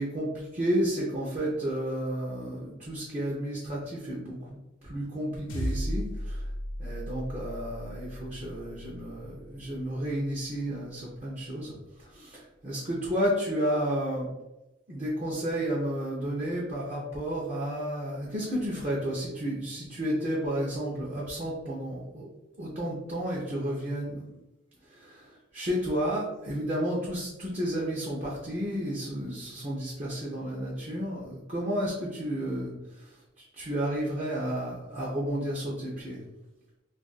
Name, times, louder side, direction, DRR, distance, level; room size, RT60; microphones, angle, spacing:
voice 1, 0.0-6.5 6.8-14.3 14.9-22.3 22.6-24.3 24.8-36.2, equal, 40° right, -5 dB, 0.7 m, -32 dB
sound 1, 5.5-10.1, equal, 85° left, 0.6 m, -36 dB
2.7 x 2.5 x 4.0 m, 0.97 s
head